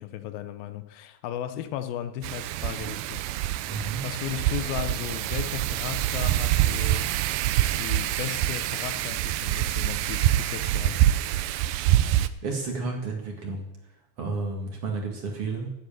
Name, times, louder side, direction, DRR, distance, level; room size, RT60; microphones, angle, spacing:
voice 1, 0.0-3.2 4.0-7.1 7.8-11.1, left 11 dB, 90° left, 2.8 m, -35 dB
Wind, 2.2-12.3, right 13 dB, 90° right, 2.4 m, -25 dB
voice 2, 3.7-4.0 12.4-13.7 14.2-15.7, right 4 dB, 45° right, 2.4 m, -31 dB
12.5 x 7.8 x 9.0 m
omnidirectional pair, 4.1 m